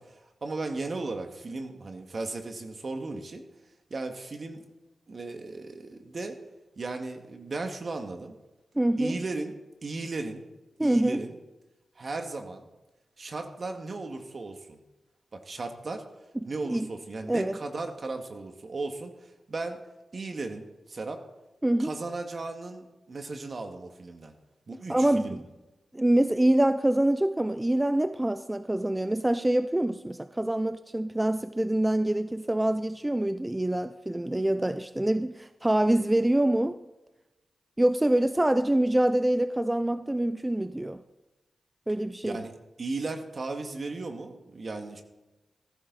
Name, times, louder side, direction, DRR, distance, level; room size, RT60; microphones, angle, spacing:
voice 1, 0.0-3.4 3.9-4.6 5.1-6.4 6.8-8.4 9.0-9.5 9.8-10.4 10.8-11.4 12.0-12.7 13.2-14.8 15.3-16.0 16.5-19.8 20.1-21.2 21.8-24.3 24.7-25.4 42.2-42.5 42.8-45.0, right 3 dB, 60° right, 2.1 m, -36 dB
voice 2, 8.8-9.2 10.8-11.2 16.4-16.9 17.3-17.6 21.6-21.9 24.9-25.4 25.9-36.8 37.8-41.0 41.9-42.4, right 1 dB, 20° right, 0.6 m, -25 dB
15.0 x 15.0 x 4.2 m
cardioid pair, 40°, 0 cm